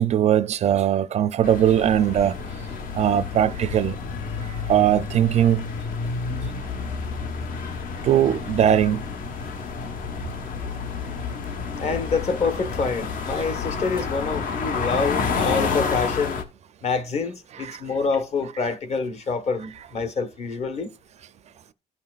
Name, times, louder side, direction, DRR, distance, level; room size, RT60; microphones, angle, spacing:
voice 1, 0.0-2.4 2.9-4.0 4.4-5.7 8.0-9.0 17.6-17.8, right 10 dB, 50° right, 0.4 m, -20 dB
sound 1, 1.4-16.4, left 5 dB, 65° left, 1.2 m, -30 dB
voice 2, 11.8-16.4 16.8-20.9, left 4 dB, 45° left, 1.2 m, -26 dB
16.5 x 5.6 x 2.4 m
cardioid pair, 155°, 15 cm